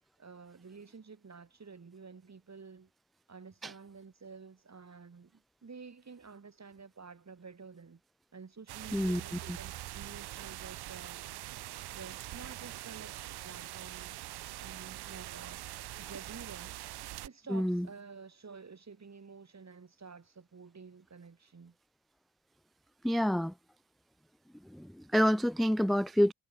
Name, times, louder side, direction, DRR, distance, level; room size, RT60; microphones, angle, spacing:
voice 1, 0.2-2.9 3.3-8.0 8.3-11.2 11.9-14.1 14.6-15.6 16.0-16.8 17.2-21.7, right 5 dB, 40° right, 4.2 m, -50 dB
sound 1, 8.7-17.3, right 16 dB, 70° right, 0.8 m, -43 dB
voice 2, 17.5-17.9 23.0-23.5 24.7-26.3, equal, ahead, 0.5 m, -28 dB
hypercardioid pair, 40°, 41 cm